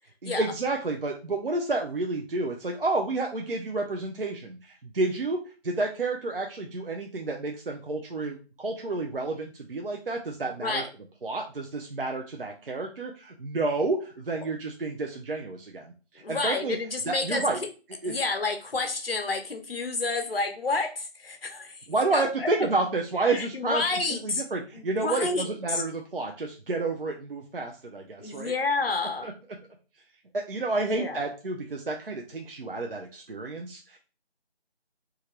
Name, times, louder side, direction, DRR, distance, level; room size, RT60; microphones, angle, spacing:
voice 1, 0.2-10.8 11.2-16.8 17.1-17.6 18.0-18.2 21.9-23.8 24.1-28.5 29.2-29.3 30.3-34.0, right 3 dB, 60° right, 2 dB, 0.5 m, -30 dB
voice 2, 16.2-17.4 18.0-21.8 22.1-22.5 23.3-24.4 24.7-25.8 28.2-29.3 30.8-31.2, left 3 dB, 60° left, 5 dB, 0.7 m, -30 dB
2.9 x 2.4 x 2.9 m, 0.34 s
figure-of-eight pair, 180°, 33 cm